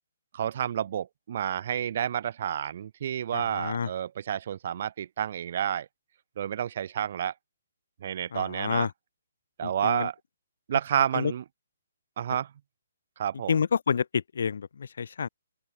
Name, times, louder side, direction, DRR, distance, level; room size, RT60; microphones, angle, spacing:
voice 1, 0.3-5.9 6.4-7.3 8.0-8.9 9.6-10.1 10.7-11.4 12.2-12.5 13.2-13.5, right 9 dB, 40° right, 0.6 m, -30 dB
voice 2, 3.3-3.9 8.3-8.9 9.6-10.1 11.1-11.3 13.5-15.3, left 6 dB, 60° left, 2.2 m, -29 dB
open air
hypercardioid pair, 175°, 0 cm